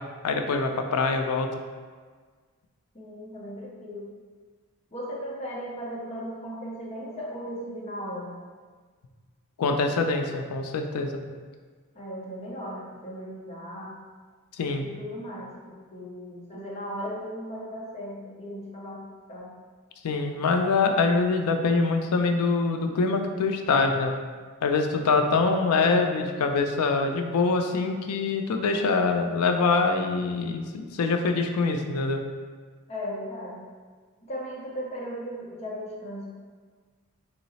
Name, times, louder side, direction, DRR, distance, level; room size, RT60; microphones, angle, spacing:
voice 1, 0.2-1.5 9.6-11.1 14.6-14.8 20.0-24.1 24.6-32.2, left 4 dB, 85° left, 5 dB, 0.4 m, -24 dB
voice 2, 2.9-4.1 4.9-8.4 11.9-14.0 14.8-19.0 19.3-19.5 25.7-26.0 32.9-33.6 34.2-36.4, equal, 30° left, -4 dB, 0.7 m, -37 dB
3.8 x 2.0 x 4.0 m, 1.5 s
head